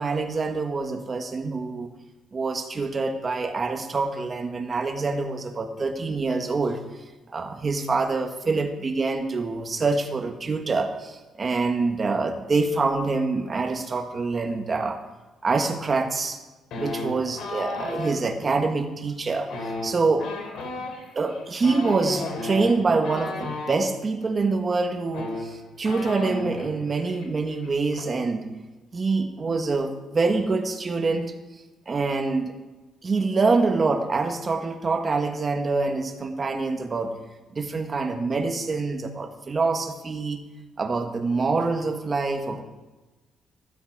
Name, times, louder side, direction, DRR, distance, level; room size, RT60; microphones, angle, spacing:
voice 1, 0.0-1.9 2.3-6.8 7.3-15.0 15.4-16.4 16.8-20.3 21.1-28.5 28.9-31.3 31.9-32.5 33.0-37.1 37.5-40.4 40.8-42.6, right 3 dB, 25° right, 5 dB, 1.6 m, -25 dB
sound 1, 16.7-18.2 19.4-23.8 24.7-24.8 25.1-26.7 27.0-27.3 27.5-28.0, left 2 dB, 75° left, 3.5 m, -33 dB
15.0 x 13.5 x 4.9 m, 1.1 s
cardioid pair, 145°, 0 cm